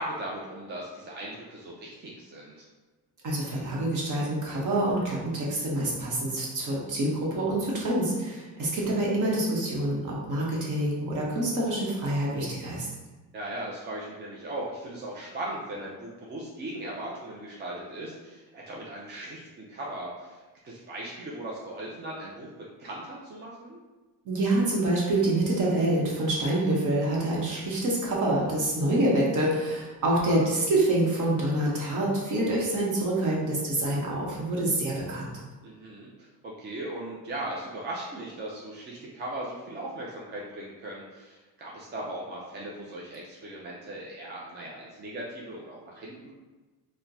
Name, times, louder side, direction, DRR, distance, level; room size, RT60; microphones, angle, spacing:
voice 1, 0.0-2.7 13.3-20.4 20.6-22.5 22.8-23.8 30.3-30.5 35.6-46.3, right 1 dB, 25° right, -4 dB, 0.4 m, -38 dB
voice 2, 3.2-12.9 24.2-35.3, right 1 dB, 50° right, -4 dB, 1.0 m, -26 dB
4.2 x 2.2 x 2.6 m, 1.3 s
cardioid pair, 150°, 39 cm